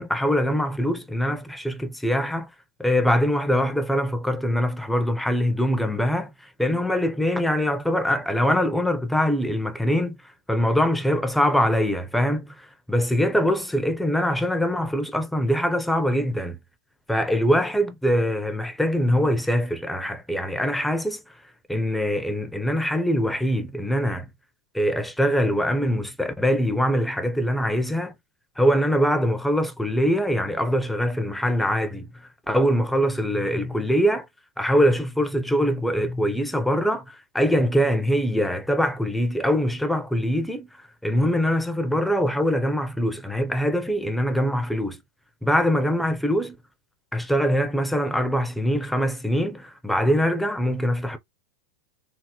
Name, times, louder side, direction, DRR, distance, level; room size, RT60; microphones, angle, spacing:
voice 1, 0.0-2.5 2.8-10.2 10.5-16.6 17.1-21.2 21.7-24.3 24.7-28.1 28.6-32.1 32.5-34.3 34.6-40.7 41.0-45.0 45.4-46.6 47.1-51.2, equal, ahead, 0.5 m, -23 dB
3.5 x 2.0 x 2.8 m
supercardioid pair, 145°, 11 cm